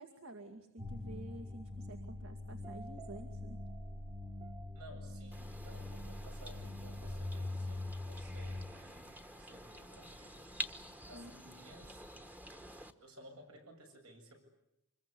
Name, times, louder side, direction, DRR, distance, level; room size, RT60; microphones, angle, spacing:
voice 1, 0.0-3.6 11.1-11.3, right 1 dB, 65° right, 5 dB, 2.0 m, -50 dB
sound 1, 0.8-8.7, left 2 dB, 25° right, 1.3 m, -43 dB
voice 2, 4.7-10.5 11.1-12.0 12.5-12.6 13.0-14.5, right 1 dB, 80° right, 3 dB, 7.6 m, -57 dB
sound 2, 5.3-12.9, right 1 dB, 5° right, 1.1 m, -49 dB
26.0 x 22.0 x 9.8 m, 0.84 s
head